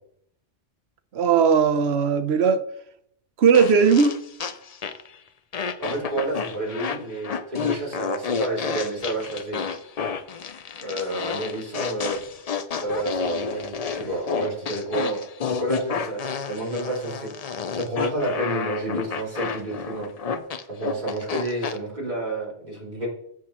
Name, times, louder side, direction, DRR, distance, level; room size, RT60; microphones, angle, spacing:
voice 1, 1.1-2.6 3.4-4.1, right 6 dB, 65° right, 1.0 m, -18 dB
sound 1, 3.5-5.1 5.5-21.8, left 6 dB, 45° left, 0.5 m, -30 dB
voice 2, 5.8-9.6 10.8-12.2 12.8-15.2 15.6-16.2 16.4-17.3 17.7-20.1 20.7-23.1, right 1 dB, 40° right, 3.1 m, -29 dB
14.5 x 6.1 x 3.0 m
omnidirectional pair, 1.2 m